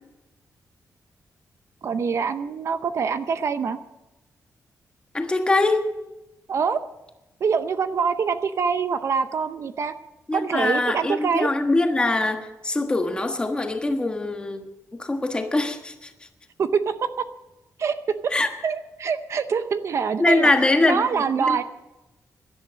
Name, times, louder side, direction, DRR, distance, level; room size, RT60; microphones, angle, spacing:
voice 1, 1.8-3.8 6.5-6.8 7.4-9.9 10.3-11.5 16.6-16.9 17.8-17.9 18.2-18.3 18.6-20.5 20.9-21.6, right 6 dB, 50° right, 11 dB, 0.7 m, -24 dB
voice 2, 5.1-5.8 10.3-14.7 15.0-16.1 18.3-18.5 20.2-21.0 21.4-21.6, left 2 dB, 15° left, 5 dB, 1.4 m, -22 dB
17.5 x 11.5 x 6.4 m, 0.99 s
wide cardioid pair, 165°, 6 cm